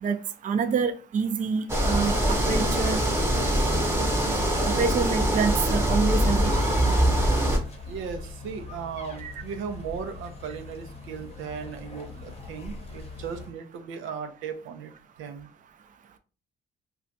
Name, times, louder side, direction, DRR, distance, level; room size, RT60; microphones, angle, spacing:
voice 1, 0.0-3.0 4.6-6.5 9.2-9.4, right 5 dB, 40° right, 9 dB, 0.4 m, -27 dB
sound 1, 1.7-7.6, right 1 dB, 10° right, 0.8 m, -23 dB
sound 2, 6.2-13.5, left 4 dB, 30° left, 0.8 m, -41 dB
voice 2, 7.9-14.9 15.2-15.5, right 6 dB, 85° right, 7 dB, 0.5 m, -37 dB
2.4 x 2.3 x 3.9 m, 0.35 s
cardioid pair, 90°, 20 cm